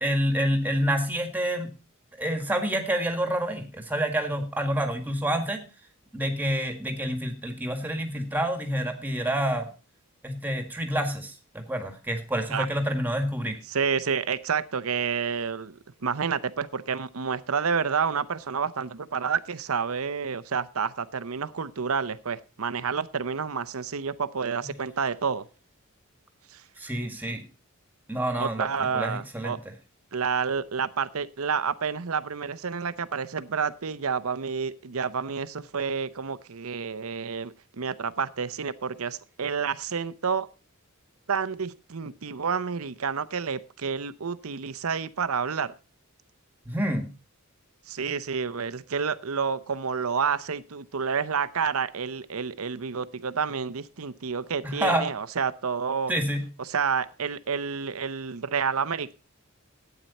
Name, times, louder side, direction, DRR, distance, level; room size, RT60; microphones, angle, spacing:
voice 1, 0.0-1.7 2.2-5.6 6.1-9.7 10.2-13.6 24.6-24.7 26.8-27.4 28.1-29.6 46.7-47.1 54.6-55.1 56.1-56.5, equal, 10° right, 5 dB, 1.8 m, -28 dB
voice 2, 13.7-25.4 26.5-26.6 28.4-29.6 30.1-40.5 41.3-45.7 47.9-56.1 56.7-59.1, right 6 dB, 80° right, 14 dB, 0.8 m, -29 dB
12.5 x 9.2 x 4.2 m, 0.33 s
head